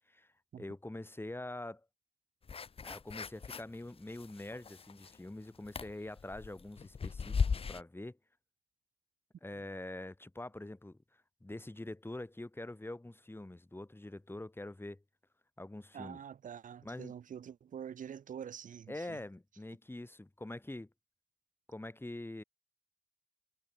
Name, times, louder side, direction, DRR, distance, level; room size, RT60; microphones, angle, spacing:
voice 1, 0.6-1.8 2.8-8.2 9.4-11.0 11.4-15.0 15.6-16.2 16.8-17.1 18.9-20.9 21.7-22.4, left 1 dB, 15° left, 4.4 m, -45 dB
sound 1, 2.5-3.7 4.1-5.3 5.6-7.8, left 5 dB, 45° left, 0.6 m, -37 dB
voice 2, 15.9-19.2, right 8 dB, 75° right, 0.6 m, -46 dB
wide cardioid pair, 85°, 13 cm